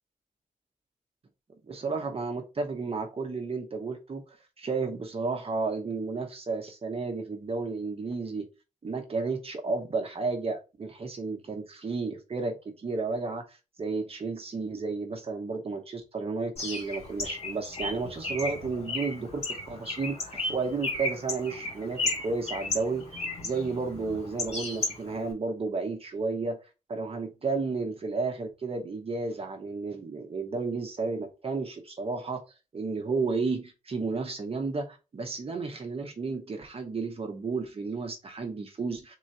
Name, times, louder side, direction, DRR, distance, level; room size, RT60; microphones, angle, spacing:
voice 1, 1.7-8.5 8.8-26.6 26.9-32.4 32.7-39.2, right 4 dB, 45° right, 1.0 m, -32 dB
Bird, 16.6-25.3, left 2 dB, 50° left, 2.3 m, -35 dB
3.8 x 3.1 x 4.0 m
wide cardioid pair, 150°, 14 cm